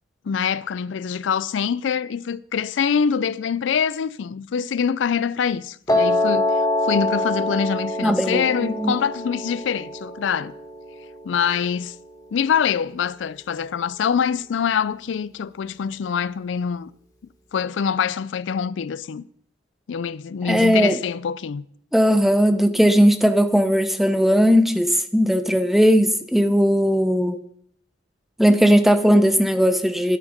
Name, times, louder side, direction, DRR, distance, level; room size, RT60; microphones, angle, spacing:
voice 1, 0.3-10.5 11.2-12.0 12.3-16.9 17.5-19.3 19.9-21.6, left 7 dB, 85° left, 0.4 m, -24 dB
Piano, 5.9-12.0, left 1 dB, 20° left, 1.6 m, -25 dB
voice 2, 8.0-9.0 20.4-21.0 21.9-27.4 28.4-30.2, equal, ahead, 0.6 m, -18 dB
10.5 x 9.9 x 5.1 m
head